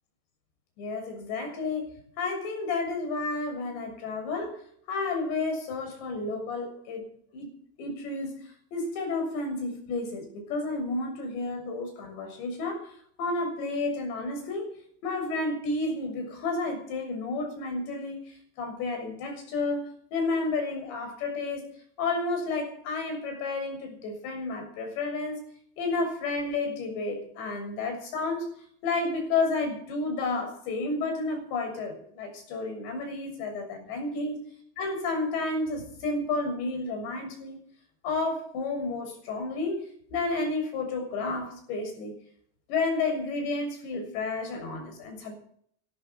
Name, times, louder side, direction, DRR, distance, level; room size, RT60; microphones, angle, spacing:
voice 1, 0.8-4.6 4.9-7.1 7.3-7.5 7.8-8.4 8.7-12.9 13.2-14.7 15.0-18.2 18.6-21.7 22.0-25.4 25.8-28.5 28.8-34.4 34.8-37.6 38.0-39.8 40.1-42.1 42.7-45.3, left 3 dB, 60° left, 6 dB, 6.6 m, -31 dB
13.0 x 12.5 x 8.0 m, 0.62 s
cardioid pair, 165°, 34 cm